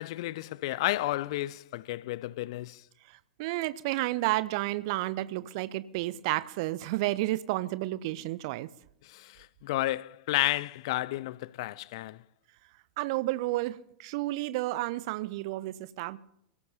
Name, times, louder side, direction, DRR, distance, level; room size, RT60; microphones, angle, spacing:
voice 1, 0.0-2.8 9.0-12.2, left 17 dB, 50° left, 0.5 m, -32 dB
voice 2, 3.4-8.7 13.0-16.2, right 18 dB, 50° right, 0.8 m, -31 dB
29.0 x 17.0 x 2.9 m
figure-of-eight pair, 90°, 4 cm